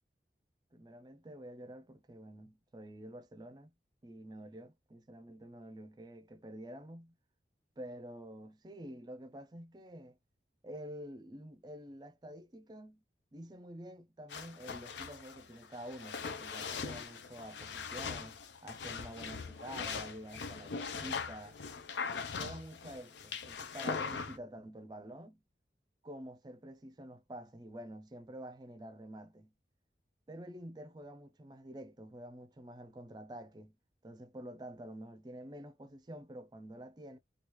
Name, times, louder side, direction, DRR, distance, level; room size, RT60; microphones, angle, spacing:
voice 1, 0.7-3.7 4.0-7.1 7.8-10.2 10.6-13.0 13.3-18.4 18.6-21.6 22.4-25.4 26.0-29.5 30.3-33.7 34.0-37.2, right 1 dB, 25° right, 0.4 m, -48 dB
sound 1, 14.3-24.4, left 5 dB, 90° left, 0.5 m, -41 dB
3.0 x 2.3 x 3.0 m
head